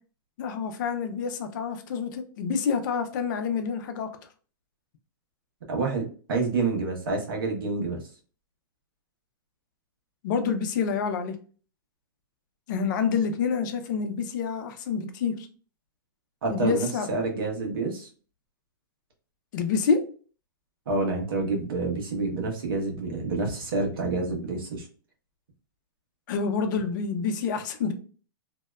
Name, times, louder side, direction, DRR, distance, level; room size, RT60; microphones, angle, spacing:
voice 1, 0.4-4.1 10.2-11.4 12.7-15.5 16.5-17.1 19.5-20.0 26.3-27.9, left 6 dB, 55° left, 0.6 m, -27 dB
voice 2, 5.7-8.0 16.4-18.1 20.9-24.9, right 3 dB, 80° right, 1.1 m, -28 dB
2.7 x 2.1 x 2.3 m
hypercardioid pair, 130°, 12 cm